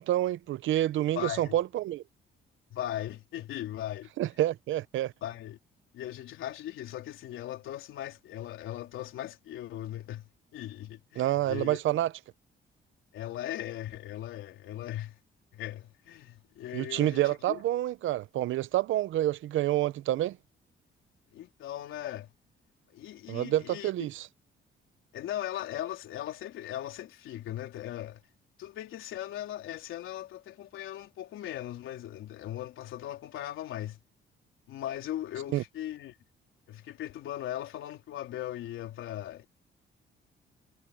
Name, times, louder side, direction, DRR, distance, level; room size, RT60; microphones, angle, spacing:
voice 1, 0.0-2.0 4.2-5.1 11.2-12.1 16.7-20.4 23.3-24.3 35.5-35.6, right 14 dB, 80° right, 0.8 m, -28 dB
voice 2, 1.2-1.6 2.7-4.1 5.2-5.6 5.9-11.8 13.1-15.2 15.5-17.6 21.3-22.3 22.9-23.9 25.1-28.2 28.6-34.0 34.7-36.2 36.7-39.5, left 12 dB, 85° left, 3.7 m, -38 dB
cardioid pair, 90°, 20 cm